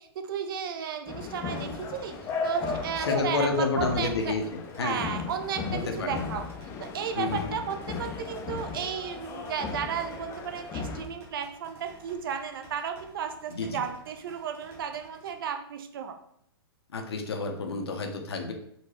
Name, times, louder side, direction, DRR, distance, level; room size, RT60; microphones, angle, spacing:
voice 1, 0.0-4.3 4.8-6.5 6.8-16.2, right 7 dB, 55° right, 7 dB, 0.5 m, -34 dB
sound 1, 1.1-11.1, left 4 dB, 20° left, 0.3 m, -36 dB
sound 2, 1.4-15.4, right 2 dB, 20° right, 0.8 m, -54 dB
voice 2, 3.1-4.4 4.8-5.1 5.7-6.2 7.1-7.5 13.5-13.8 16.9-18.5, left 4 dB, 80° left, 4 dB, 0.6 m, -29 dB
3.8 x 2.2 x 2.9 m, 0.70 s
hypercardioid pair, 125°, 13 cm